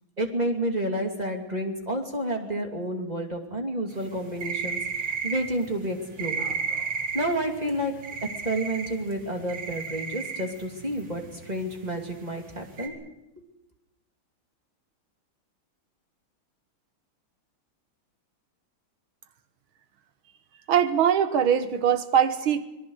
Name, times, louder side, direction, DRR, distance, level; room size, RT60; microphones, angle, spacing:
voice 1, 0.2-6.5 7.1-7.9 8.4-12.9, right 1 dB, 20° right, 3 dB, 2.7 m, -30 dB
sound 1, 4.0-12.9, right 5 dB, 70° right, 3.1 m, -33 dB
voice 2, 20.7-22.7, right 8 dB, 85° right, 10 dB, 2.1 m, -22 dB
26.0 x 19.5 x 6.5 m, 0.93 s
omnidirectional pair, 2.2 m